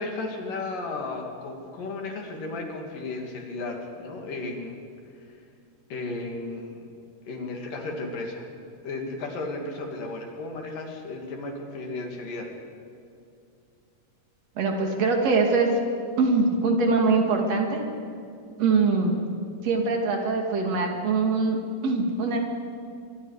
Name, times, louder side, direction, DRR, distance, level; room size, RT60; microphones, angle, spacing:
voice 1, 0.0-4.9 5.9-6.9 7.3-8.5 8.8-12.5, left 2 dB, 90° left, 1 dB, 4.3 m, -34 dB
voice 2, 14.6-15.8 16.2-17.9 18.6-19.2 19.6-22.4, right 3 dB, 55° right, 2 dB, 3.4 m, -23 dB
24.5 x 23.5 x 5.0 m, 2.5 s
omnidirectional pair, 3.7 m